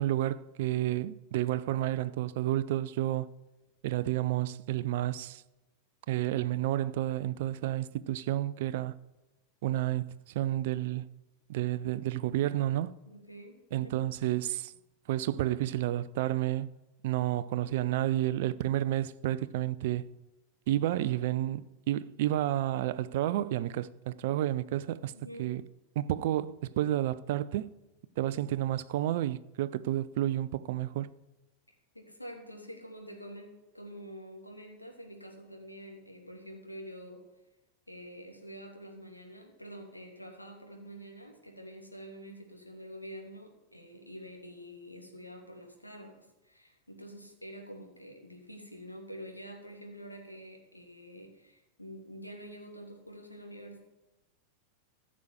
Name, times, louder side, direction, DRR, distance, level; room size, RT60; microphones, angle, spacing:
voice 1, 0.0-3.3 3.8-5.4 6.1-9.0 9.6-11.1 11.5-12.9 13.7-14.7 15.1-16.7 17.0-20.0 20.7-25.1 25.4-25.6 26.0-27.7 28.2-31.1, right 13 dB, 50° right, 0.5 m, -30 dB
voice 2, 13.1-14.0 25.1-25.5 31.9-37.2 37.9-53.8, equal, 85° left, 2.8 m, -47 dB
15.5 x 6.2 x 8.2 m
figure-of-eight pair, 90°, 0 cm